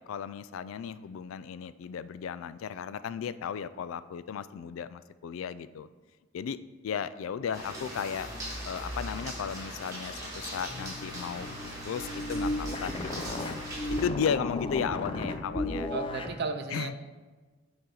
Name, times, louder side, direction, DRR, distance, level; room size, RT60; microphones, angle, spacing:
voice 1, 0.0-5.9 6.3-6.6 6.8-8.3 8.6-11.5 11.8-13.6 13.9-15.9 16.7-16.9, left 7 dB, 80° left, 15 dB, 0.3 m, -35 dB
sound 1, 7.5-14.1, equal, 15° right, 1.8 m, -40 dB
sound 2, 10.7-16.4, left 1 dB, 25° left, 0.5 m, -35 dB
voice 2, 15.9-17.0, right 4 dB, 55° right, 7 dB, 0.6 m, -34 dB
9.4 x 4.4 x 3.9 m, 1.3 s
head